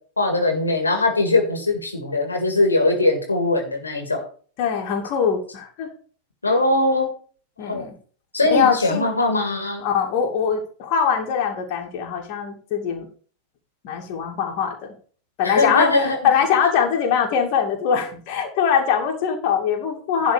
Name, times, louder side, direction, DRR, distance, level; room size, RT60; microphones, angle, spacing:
voice 1, 0.2-4.2 6.4-7.1 7.7-7.9 8.3-9.8 15.4-16.2, left 2 dB, 80° left, 3 dB, 2.1 m, -21 dB
voice 2, 4.6-5.9 7.6-7.9 8.5-9.1 9.8-13.1 13.8-14.9 15.4-20.3, left 7 dB, 45° left, 2 dB, 2.4 m, -22 dB
11.5 x 4.4 x 6.3 m, 0.42 s
figure-of-eight pair, 90°, 0 cm